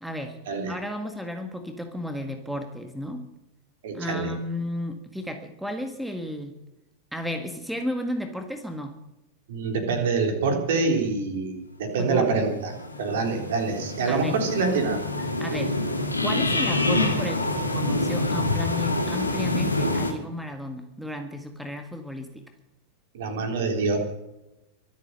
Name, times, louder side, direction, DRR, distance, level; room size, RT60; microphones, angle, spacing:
voice 1, 0.0-0.4 0.7-3.3 3.9-6.6 7.1-9.0 12.0-12.3 14.1-14.4 15.4-15.8 16.2-22.4, left 1 dB, ahead, 6 dB, 1.7 m, -33 dB
voice 2, 3.8-4.3 9.5-15.3 23.1-24.0, right 4 dB, 55° right, 4 dB, 3.7 m, -26 dB
sound 1, 12.3-20.1, left 2 dB, 85° left, 2.4 m, -26 dB
24.0 x 8.4 x 6.6 m, 0.93 s
figure-of-eight pair, 90°, 0 cm